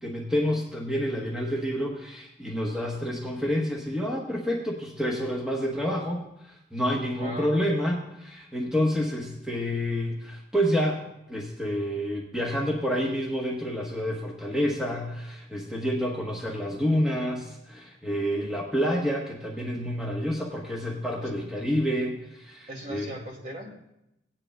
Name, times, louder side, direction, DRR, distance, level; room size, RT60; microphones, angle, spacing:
voice 1, 0.0-11.0 11.3-23.1, equal, 5° right, -2 dB, 1.0 m, -28 dB
voice 2, 7.1-7.6 21.2-21.3 22.7-23.7, right 1 dB, 40° right, 0 dB, 2.2 m, -38 dB
18.0 x 9.8 x 2.2 m, 0.85 s
head